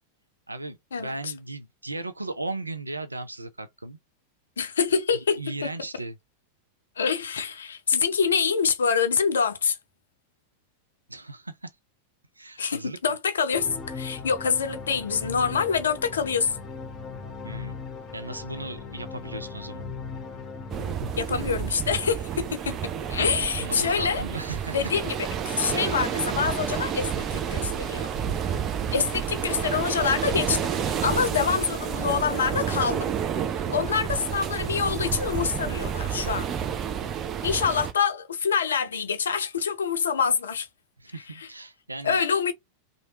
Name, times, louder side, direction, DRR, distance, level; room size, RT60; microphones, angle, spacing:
voice 1, 0.5-4.0 5.4-6.2 11.1-11.7 12.4-13.0 17.4-17.7 18.1-19.9 23.6-25.0 28.9-29.1 41.0-42.2, right 2 dB, 80° right, 0.4 m, -36 dB
voice 2, 4.6-5.4 7.0-9.8 12.6-16.5 21.2-22.8 23.1-24.2 24.7-25.2 25.5-28.1 28.4-28.6 28.9-33.1 33.7-36.5 37.4-40.7 41.4-41.5 42.0-42.5, left 6 dB, 70° left, 0.6 m, -26 dB
sound 1, 13.5-22.0, left 5 dB, 25° left, 0.9 m, -38 dB
sound 2, 20.7-37.9, right 8 dB, 30° right, 0.6 m, -30 dB
3.0 x 2.5 x 2.9 m
figure-of-eight pair, 90°, 0 cm